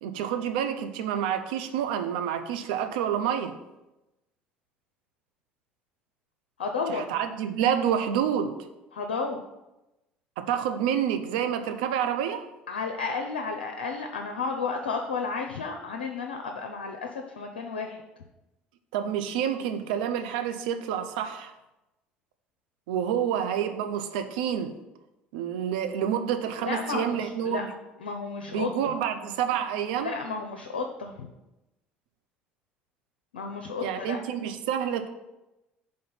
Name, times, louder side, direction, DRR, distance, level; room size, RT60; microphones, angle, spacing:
voice 1, 0.0-3.6 6.9-8.6 10.4-12.5 18.9-21.5 22.9-24.8 25.3-27.7 28.5-30.1 33.8-35.1, right 9 dB, 70° right, 8 dB, 0.5 m, -28 dB
voice 2, 6.6-7.0 8.9-9.4 12.7-18.0 26.6-27.7 28.0-28.9 30.0-31.3 33.3-34.2, left 4 dB, 80° left, 3 dB, 0.5 m, -32 dB
5.3 x 3.9 x 5.8 m, 0.97 s
figure-of-eight pair, 60°, 5 cm